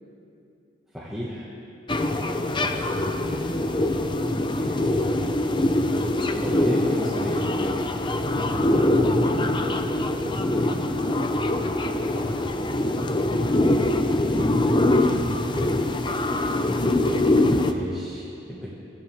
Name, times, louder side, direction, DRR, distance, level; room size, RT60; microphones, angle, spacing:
voice 1, 0.9-1.5 2.6-2.9 4.5-4.7 6.3-7.5 17.5-18.7, equal, ahead, -8 dB, 1.7 m, -34 dB
sound 1, 1.9-17.7, left 1 dB, 25° left, 0.6 m, -23 dB
voice 2, 2.0-2.7 3.1-5.2 8.4-14.9, equal, 20° right, -2 dB, 1.7 m, -42 dB
24.0 x 14.5 x 3.6 m, 2.7 s
head